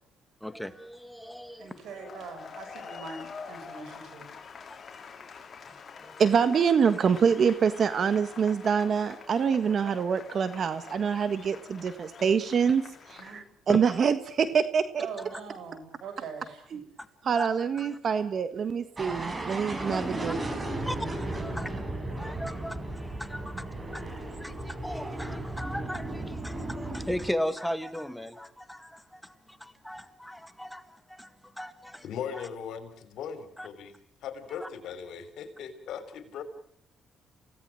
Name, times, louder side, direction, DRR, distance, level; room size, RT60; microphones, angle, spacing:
voice 1, 0.4-1.7 4.7-4.8 5.9-6.2 13.7-13.8 17.4-17.5 18.1-18.2 19.9-20.3 20.9-21.7 22.1-32.0 32.3-32.5 33.6-33.7 34.6-34.7, equal, 5° left, 10 dB, 2.0 m, -37 dB
voice 2, 1.6-4.3 13.2-13.4 15.0-16.8, right 5 dB, 75° right, 8 dB, 6.8 m, -42 dB
sound 1, 1.8-13.4, left 5 dB, 45° left, 4.0 m, -46 dB
voice 3, 6.2-15.1 16.7-16.8 17.2-20.4, right 6 dB, 55° right, 11 dB, 1.4 m, -25 dB
sound 2, 19.0-27.3, right 1 dB, 25° right, 5.1 m, -35 dB
voice 4, 32.0-33.9 34.2-36.4, left 7 dB, 80° left, 10 dB, 3.7 m, -39 dB
29.0 x 17.5 x 7.6 m, 0.65 s
cardioid pair, 85°, 0 cm